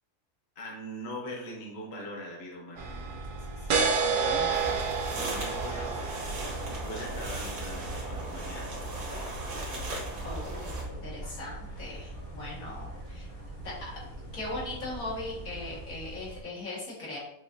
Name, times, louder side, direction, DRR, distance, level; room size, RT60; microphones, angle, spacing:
voice 1, 0.6-6.4 6.7-8.7, equal, 50° left, -2 dB, 1.1 m, -42 dB
sound 1, 2.8-16.4, right 5 dB, 70° right, 1.0 m, -34 dB
sound 2, 4.5-10.8, right 2 dB, 85° right, 1.6 m, -37 dB
sound 3, 6.3-15.9, left 1 dB, 30° left, 0.7 m, -47 dB
voice 2, 10.2-13.3 13.6-13.7 14.3-17.2, left 2 dB, 85° left, -6 dB, 2.0 m, -39 dB
6.3 x 2.5 x 2.6 m, 0.77 s
omnidirectional pair, 1.5 m